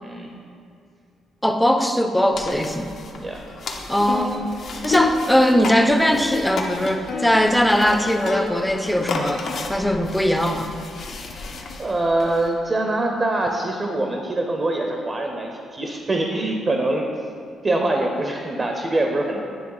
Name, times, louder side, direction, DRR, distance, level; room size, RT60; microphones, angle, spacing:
voice 1, 0.0-0.3 3.1-3.4 11.8-17.1 17.6-19.4, right 2 dB, 35° right, 2 dB, 0.7 m, -24 dB
voice 2, 1.4-2.9 3.9-4.5 4.8-10.7, equal, 5° left, 6 dB, 0.5 m, -20 dB
sound 1, 2.3-12.5, left 3 dB, 60° left, 0.7 m, -30 dB
9.6 x 3.3 x 4.8 m, 2.4 s
cardioid pair, 80°, 0 cm